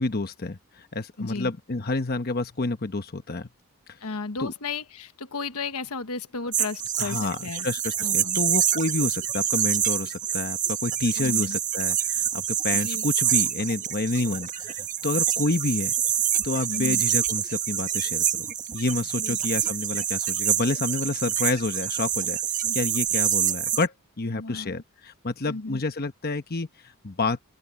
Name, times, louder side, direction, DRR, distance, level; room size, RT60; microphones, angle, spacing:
voice 1, 0.0-3.5 3.9-4.0 4.4-4.5 7.0-7.4 7.6-15.9 16.4-22.4 22.7-27.4, left 2 dB, 45° left, 1.0 m, -29 dB
voice 2, 1.2-1.6 4.0-7.7 8.0-8.4 11.2-11.6 12.7-13.1 16.7-17.0 19.2-19.4 22.6-22.8 24.3-24.8 25.5-25.8, left 4 dB, 80° left, 1.2 m, -34 dB
sound 1, 6.5-23.9, right 10 dB, 35° right, 1.4 m, -26 dB
open air
head